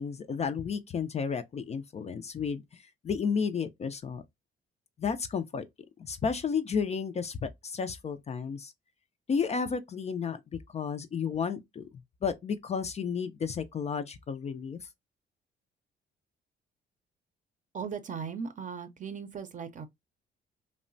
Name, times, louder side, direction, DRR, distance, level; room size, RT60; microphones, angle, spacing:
voice 1, 0.0-4.2 5.0-5.6 6.0-8.7 9.3-10.4 10.7-11.9 12.2-14.9, left 6 dB, 35° left, 0.4 m, -32 dB
voice 2, 17.7-19.9, right 6 dB, 40° right, 0.6 m, -38 dB
2.9 x 2.1 x 2.5 m
cardioid pair, 90°, 20 cm